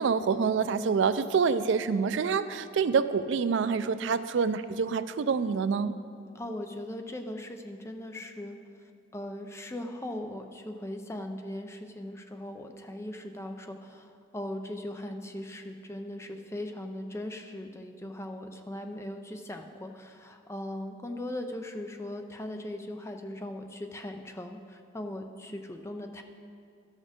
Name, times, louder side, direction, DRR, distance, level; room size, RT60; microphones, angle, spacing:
voice 1, 0.0-5.9, right 5 dB, 65° right, 13 dB, 0.3 m, -26 dB
voice 2, 6.3-26.2, left 1 dB, 15° left, 5 dB, 0.5 m, -39 dB
12.5 x 6.4 x 5.0 m, 2.4 s
head